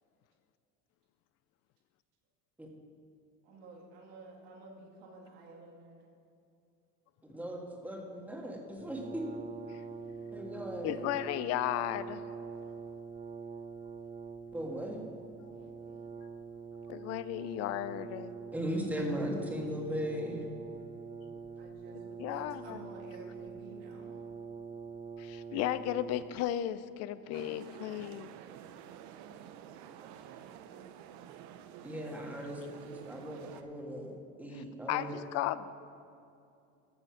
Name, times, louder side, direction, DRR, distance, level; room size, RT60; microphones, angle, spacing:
voice 1, 3.4-6.1 21.6-24.2 25.2-25.3 30.0-31.6, right 3 dB, 90° right, -1 dB, 2.4 m, -53 dB
voice 2, 7.2-9.3 10.3-11.1 14.5-15.0 18.5-20.4 31.8-35.1, equal, 5° right, 0 dB, 1.7 m, -38 dB
Brass instrument, 8.8-26.6, right 5 dB, 25° right, 0.7 m, -45 dB
voice 3, 10.8-12.2 16.9-18.3 22.2-22.8 25.2-28.3 34.6-35.7, left 13 dB, 55° left, 15 dB, 0.5 m, -35 dB
sound 1, 27.3-33.6, right 10 dB, 70° right, 0.7 m, -50 dB
14.0 x 6.8 x 5.7 m, 2.6 s
cardioid pair, 145°, 30 cm